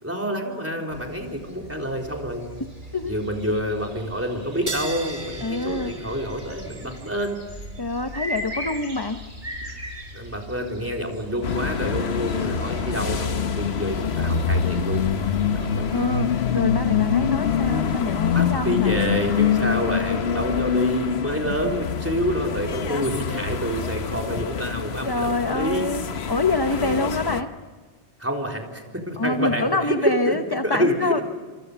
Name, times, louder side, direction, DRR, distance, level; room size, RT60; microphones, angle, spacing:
voice 1, 0.0-2.4 3.0-7.4 10.1-15.0 15.5-15.9 18.3-25.9 26.7-27.0 28.2-30.4 30.6-31.2, equal, 15° right, 1 dB, 4.0 m, -27 dB
sound 1, 0.9-16.2, equal, 50° right, 6.0 m, -40 dB
sound 2, 4.7-11.6, right 2 dB, 35° right, 2.3 m, -40 dB
voice 2, 5.4-5.9 7.8-9.2 15.9-19.0 25.0-27.5 29.2-31.2, left 2 dB, 25° left, 7 dB, 0.9 m, -26 dB
sound 3, 11.4-27.4, left 7 dB, 80° left, 1.3 m, -25 dB
27.0 x 25.5 x 6.9 m, 1.4 s
omnidirectional pair, 1.1 m